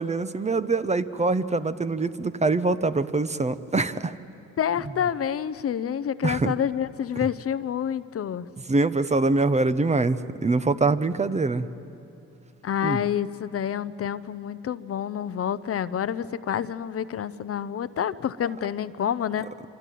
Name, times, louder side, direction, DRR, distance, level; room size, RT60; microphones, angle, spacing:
voice 1, 0.0-4.1 6.2-6.5 7.2-7.3 8.7-11.7 12.8-13.0, right 3 dB, 20° right, 12 dB, 0.9 m, -24 dB
voice 2, 4.6-8.5 12.6-19.5, left 9 dB, 50° left, 14 dB, 0.8 m, -28 dB
25.5 x 25.0 x 9.3 m, 2.9 s
cardioid pair, 90°, 30 cm